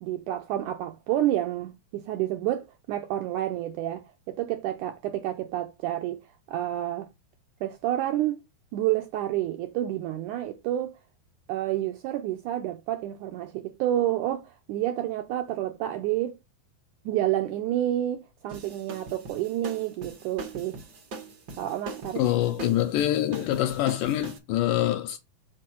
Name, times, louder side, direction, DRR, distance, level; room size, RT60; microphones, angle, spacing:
voice 1, 0.0-6.2 6.5-7.1 7.6-8.4 8.7-10.9 11.5-16.4 17.1-20.8 21.6-22.2, right 13 dB, 80° right, 1.8 m, -29 dB
sound 1, 18.5-24.4, right 2 dB, 50° right, 1.2 m, -41 dB
voice 2, 22.2-25.2, left 13 dB, 80° left, 2.0 m, -25 dB
5.2 x 4.4 x 6.1 m
omnidirectional pair, 4.2 m